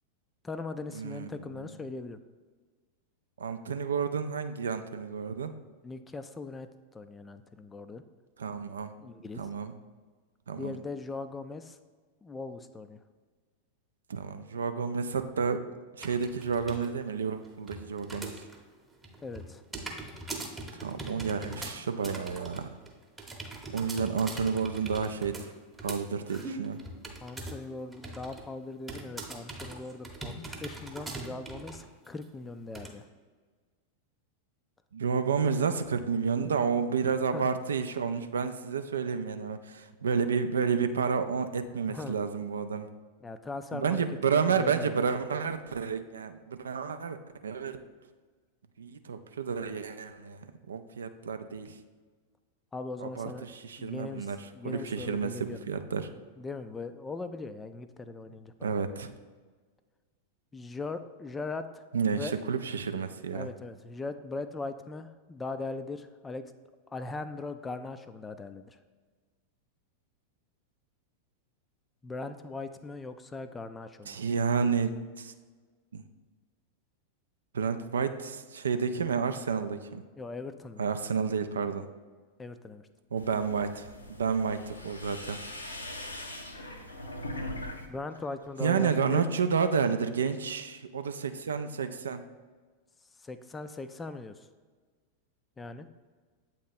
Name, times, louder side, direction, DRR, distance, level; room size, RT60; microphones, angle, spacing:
voice 1, 0.4-2.2 5.8-6.7 6.9-8.0 9.0-9.4 10.6-11.8 12.2-13.0 19.2-19.6 27.2-33.0 37.3-37.5 41.9-42.2 43.2-44.9 52.7-53.4 53.8-55.6 56.4-58.7 60.5-62.3 63.3-66.4 66.9-68.8 72.0-74.2 80.2-80.8 82.4-82.9 84.5-84.6 87.9-89.2 93.2-94.5 95.6-95.9, left 3 dB, 15° left, 10 dB, 0.3 m, -40 dB
voice 2, 1.0-1.3 3.4-5.5 8.4-8.9 9.4-9.7 10.5-10.7 14.1-15.6 16.0-18.3 20.7-22.7 23.7-25.5 25.8-26.8 34.9-42.9 43.7-47.2 47.4-47.8 48.8-51.8 53.0-56.1 58.6-59.1 61.9-63.5 74.1-75.3 75.9-76.0 77.5-80.0 80.8-81.9 83.1-85.4 88.6-92.2, right 6 dB, 70° right, 9 dB, 0.3 m, -30 dB
sound 1, 16.0-16.9 17.2-18.6 18.9-27.7 27.9-28.4 28.9-31.9 32.2-32.3 32.7-32.9, right 2 dB, 10° right, 0.8 m, -41 dB
sound 2, 83.2-87.9 88.2-88.8, left 1 dB, 80° left, 0.6 m, -41 dB
7.8 x 3.0 x 4.2 m, 1.5 s
figure-of-eight pair, 90°, 0 cm